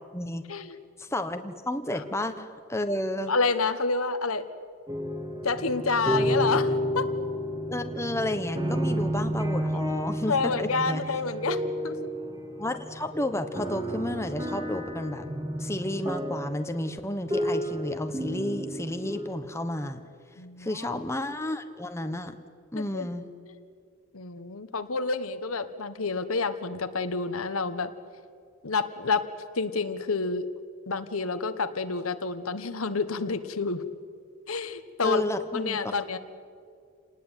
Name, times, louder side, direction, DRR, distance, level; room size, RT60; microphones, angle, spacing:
voice 1, 0.1-0.5 1.0-3.3 7.7-11.0 12.6-15.2 15.6-20.0 20.6-22.4 22.7-23.3 35.0-35.9, left 1 dB, 15° left, 7 dB, 1.2 m, -31 dB
voice 2, 3.3-4.5 5.4-7.1 10.3-12.1 20.4-21.0 22.7-23.1 23.5-23.6 24.1-27.9 28.6-29.3 29.5-30.5 30.9-33.8 34.5-35.2 35.5-36.2, left 4 dB, 80° left, 10 dB, 1.3 m, -29 dB
sound 1, 4.9-19.3, equal, 20° right, 2.7 m, -31 dB
28.0 x 19.5 x 9.2 m, 2.2 s
head